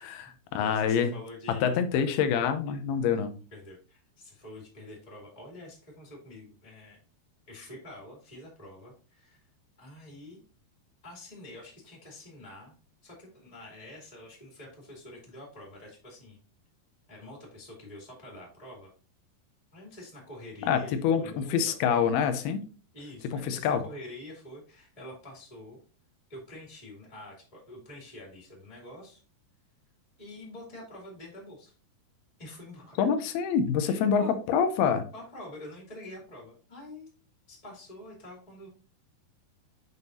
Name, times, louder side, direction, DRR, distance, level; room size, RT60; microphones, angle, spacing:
voice 1, 0.0-0.3 0.6-1.8 3.5-7.0 7.5-9.4 9.8-10.4 11.0-12.7 13.0-16.4 17.1-18.9 19.7-21.6 22.9-25.8 26.3-29.2 30.2-31.7 32.4-33.1 33.8-34.4 35.1-37.1 37.5-38.7, left 1 dB, 15° left, -2 dB, 1.9 m, -46 dB
voice 2, 0.5-1.1 1.6-3.3 20.6-22.6 23.3-23.8 33.0-35.0, left 7 dB, 90° left, 9 dB, 2.8 m, -26 dB
7.8 x 5.4 x 2.7 m, 0.37 s
omnidirectional pair, 4.4 m